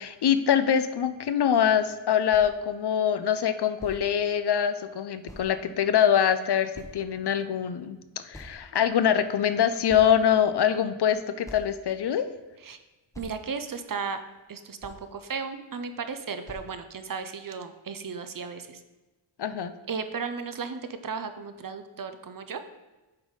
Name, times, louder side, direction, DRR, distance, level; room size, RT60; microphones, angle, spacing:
voice 1, 0.0-8.0 8.2-12.3 19.4-19.7, left 9 dB, 55° left, 11 dB, 0.5 m, -24 dB
sound 1, 2.3-2.5 3.4-3.5 3.8-4.0 5.3-5.5 6.2-6.3 6.7-7.3 8.3-8.9 9.4-9.6 9.9-10.5 11.1-11.2 11.4-11.8 12.7-12.8 13.1-13.4 14.4-14.5 14.8-15.1 16.1-16.2 16.5-16.7, left 1 dB, 5° left, 0.9 m, -45 dB
voice 2, 13.2-14.2 14.5-18.8 19.9-22.6, right 5 dB, 45° right, 9 dB, 0.6 m, -35 dB
7.4 x 4.0 x 4.7 m, 1.1 s
wide cardioid pair, 100°, 49 cm